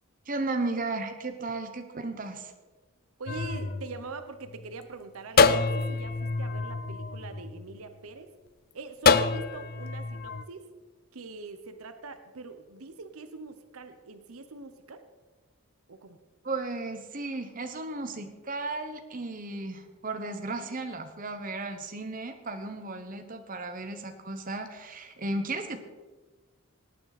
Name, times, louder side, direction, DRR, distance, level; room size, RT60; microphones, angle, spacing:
voice 1, 0.3-2.5 16.4-25.8, right 2 dB, 35° right, 6 dB, 1.1 m, -34 dB
voice 2, 3.2-8.3 8.7-10.7 11.1-15.0 15.9-16.2, right 3 dB, 75° right, 9 dB, 0.8 m, -43 dB
sound 1, 3.3-4.7 5.4-7.9 9.0-10.4, left 4 dB, 40° left, 0.5 m, -26 dB
18.5 x 9.1 x 4.1 m, 1.3 s
head